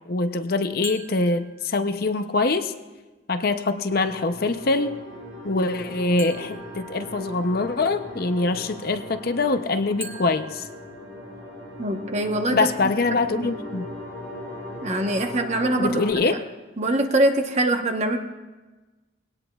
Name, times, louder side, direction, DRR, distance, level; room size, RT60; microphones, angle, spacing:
voice 1, 0.1-2.7 3.3-5.0 5.4-10.6 12.5-13.9 15.8-16.4, left 3 dB, 50° left, 9 dB, 0.6 m, -24 dB
sound 1, 0.8-2.1 6.2-7.7 10.0-11.7, right 3 dB, 15° right, 1.1 m, -43 dB
sound 2, 3.9-16.1, left 1 dB, 75° right, 5.4 m, -38 dB
voice 2, 11.8-12.7 13.3-13.5 14.8-16.0 16.8-18.2, right 1 dB, 35° right, 4 dB, 1.0 m, -23 dB
21.5 x 17.5 x 2.3 m, 1.2 s
head